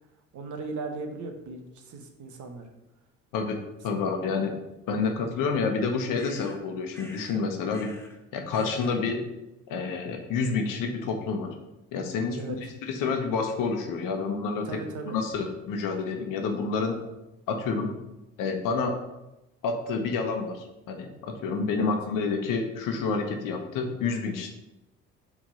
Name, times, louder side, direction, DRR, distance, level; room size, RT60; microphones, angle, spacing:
voice 1, 0.3-2.7 3.9-4.1 12.4-12.6 14.6-15.2 21.7-21.9, right 4 dB, 55° right, 4 dB, 1.1 m, -37 dB
voice 2, 3.8-4.5 4.9-7.9 8.3-9.2 9.7-11.5 11.9-14.7 15.1-17.0 17.5-17.9 18.4-19.0 19.6-24.5, left 4 dB, 60° left, 4 dB, 1.1 m, -29 dB
sound 1, 6.2-6.6 6.9-7.4 7.7-8.2 8.5-9.0, left 1 dB, 5° left, 1.1 m, -49 dB
4.8 x 3.6 x 5.5 m, 0.95 s
hypercardioid pair, 60°, 36 cm